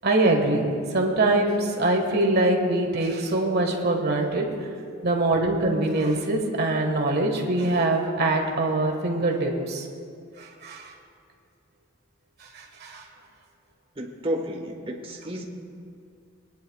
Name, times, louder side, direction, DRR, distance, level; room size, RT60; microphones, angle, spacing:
voice 1, 0.0-4.5 5.0-9.8 10.4-10.9 12.5-13.0, right 2 dB, 55° right, 1 dB, 1.6 m, -23 dB
voice 2, 13.9-15.4, right 1 dB, 30° right, 1 dB, 1.3 m, -31 dB
22.0 x 10.0 x 2.3 m, 2.4 s
head